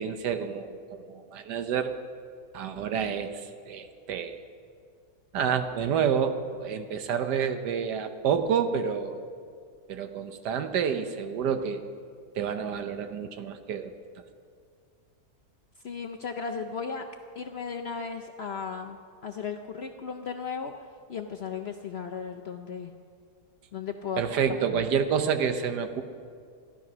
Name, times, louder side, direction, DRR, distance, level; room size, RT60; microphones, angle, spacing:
voice 1, 0.0-1.9 2.5-4.4 5.3-9.3 9.9-11.8 12.4-13.9 24.2-26.0, right 7 dB, 85° right, 9 dB, 1.5 m, -29 dB
voice 2, 15.8-17.1 17.3-19.0 19.2-20.7 21.1-22.9 23.7-24.2 24.5-24.8, left 6 dB, 60° left, 4 dB, 0.6 m, -35 dB
15.0 x 11.5 x 6.1 m, 2.2 s
omnidirectional pair, 1.7 m